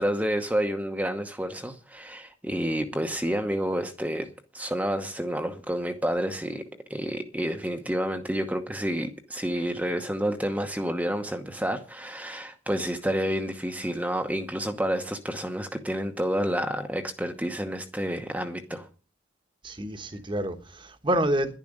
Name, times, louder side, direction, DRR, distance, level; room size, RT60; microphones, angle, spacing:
voice 1, 0.0-18.9, equal, 5° right, 0.9 m, -29 dB
voice 2, 19.6-21.6, right 1 dB, 25° right, 1.2 m, -28 dB
11.0 x 11.0 x 6.5 m
head